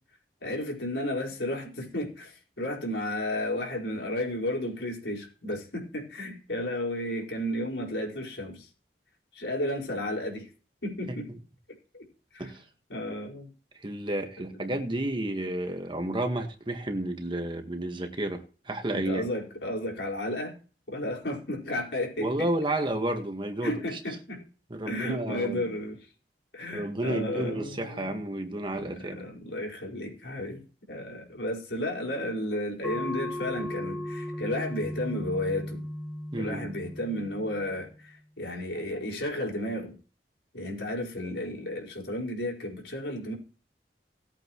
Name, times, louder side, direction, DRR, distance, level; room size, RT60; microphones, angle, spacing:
voice 1, 0.4-8.7 9.3-10.5 10.8-11.3 11.9-12.0 12.3-12.5 12.9-13.5 14.5-14.7 18.9-20.6 20.9-22.5 23.6-24.4 24.9-26.0 26.5-28.2 28.7-35.8 36.4-39.9 40.5-43.3, left 1 dB, 85° left, -2 dB, 4.9 m, -33 dB
voice 2, 13.8-19.2 22.2-24.0 24.7-25.7 26.7-29.2 36.3-36.7, right 1 dB, 30° right, 5 dB, 1.6 m, -31 dB
sound 1, 32.8-37.9, left 1 dB, 5° left, 1.4 m, -36 dB
19.0 x 8.4 x 3.1 m, 0.37 s
head